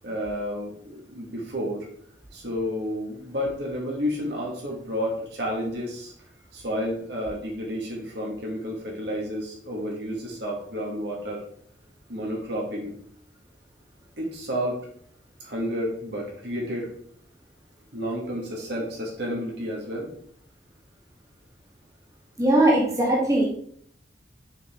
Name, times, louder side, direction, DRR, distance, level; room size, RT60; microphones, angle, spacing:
voice 1, 0.0-1.9 2.3-6.1 6.5-11.5 12.1-12.9 14.2-14.8 15.4-16.9 17.9-20.1, equal, 65° right, -2 dB, 1.8 m, -31 dB
voice 2, 22.4-23.5, right 1 dB, 20° right, -4 dB, 1.8 m, -20 dB
6.5 x 4.9 x 3.7 m, 0.63 s
head